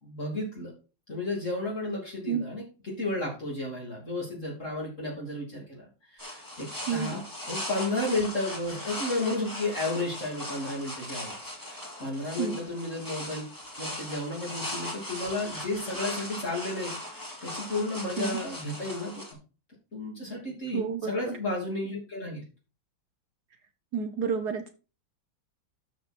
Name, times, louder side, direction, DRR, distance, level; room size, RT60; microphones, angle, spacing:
voice 1, 0.0-0.7 1.1-11.4 11.6-13.4 13.8-19.2 19.9-22.4, left 2 dB, 40° left, -4 dB, 3.4 m, -33 dB
sound 1, 6.2-19.3, left 1 dB, 10° left, 2.2 m, -39 dB
voice 2, 20.7-21.3 23.9-24.8, right 6 dB, 60° right, 8 dB, 1.4 m, -30 dB
12.5 x 4.8 x 4.4 m, 0.34 s
omnidirectional pair, 2.1 m